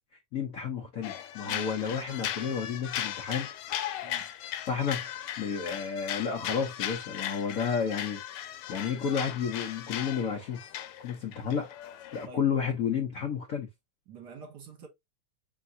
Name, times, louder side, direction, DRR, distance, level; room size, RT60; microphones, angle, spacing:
voice 1, 0.3-3.5 4.7-8.2 8.7-10.6 11.0-11.7 12.1-13.7, left 6 dB, 70° left, 0.8 m, -31 dB
sound 1, 1.0-12.3, left 11 dB, 85° left, 1.5 m, -37 dB
voice 2, 14.1-14.9, right 5 dB, 60° right, 1.4 m, -47 dB
4.8 x 3.4 x 2.6 m
omnidirectional pair, 2.3 m